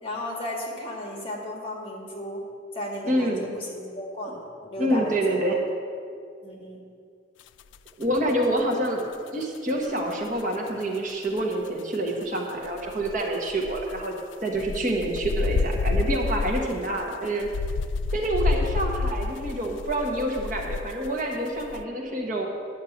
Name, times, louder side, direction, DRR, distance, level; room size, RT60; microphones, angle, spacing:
voice 1, 0.0-2.4 2.7-5.6 6.4-6.8, left 1 dB, 30° left, -1 dB, 1.7 m, -34 dB
voice 2, 3.1-3.5 4.8-5.6 8.0-9.0 9.3-14.1 14.4-17.5 18.1-22.5, right 1 dB, 40° right, 0 dB, 1.3 m, -27 dB
sound 1, 7.7-10.1 10.4-10.8 11.1-11.2 11.4-11.5 11.9-12.0 12.2-12.3 12.6-21.2 21.5-21.8, left 4 dB, 70° left, 0.3 m, -29 dB
10.0 x 6.6 x 7.2 m, 2.3 s
head